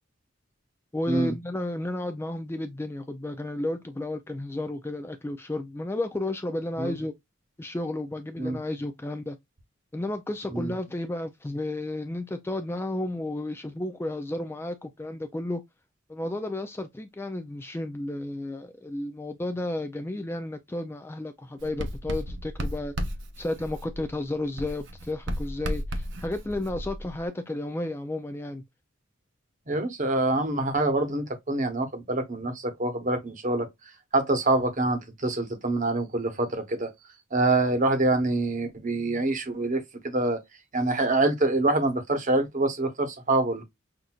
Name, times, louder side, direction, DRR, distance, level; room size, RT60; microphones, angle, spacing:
voice 1, 0.9-7.1 7.6-9.4 9.9-15.6 16.1-22.9 23.4-28.6, left 1 dB, 10° left, 0.3 m, -32 dB
Writing, 21.6-24.2 24.6-27.3, equal, 60° right, 0.7 m, -34 dB
voice 2, 29.7-33.7 34.1-36.9 37.3-40.4 40.7-43.6, right 2 dB, 40° right, 1.0 m, -25 dB
5.8 x 2.5 x 2.3 m
head